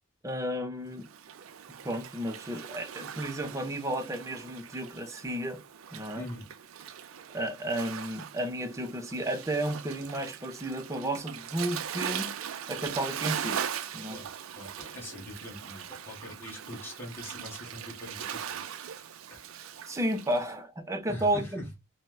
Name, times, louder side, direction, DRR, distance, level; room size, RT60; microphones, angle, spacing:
voice 1, 0.2-1.1 1.8-5.6 5.9-6.3 7.3-12.3 12.7-13.6 13.9-14.2 19.9-21.6, right 1 dB, 15° right, 0.5 m, -32 dB
Waves surf, 1.0-20.4, right 8 dB, 85° right, 0.4 m, -40 dB
voice 2, 6.1-6.5 14.1-18.6 19.3-19.4 21.1-21.7, left 1 dB, 10° left, 1.4 m, -43 dB
4.3 x 2.1 x 2.2 m
head